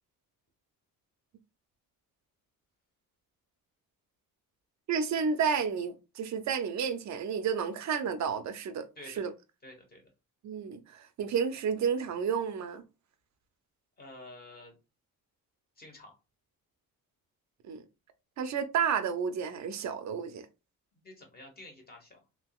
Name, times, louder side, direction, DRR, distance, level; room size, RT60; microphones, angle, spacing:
voice 1, 4.9-8.9 9.2-9.3 10.4-12.8 17.7-17.8 18.4-20.5, right 6 dB, 50° right, 0.5 m, -31 dB
voice 2, 9.6-10.0 14.0-14.8 15.8-16.1 21.0-22.2, left 1 dB, 25° left, 1.1 m, -49 dB
3.5 x 2.8 x 2.3 m
cardioid pair, 140°, 35 cm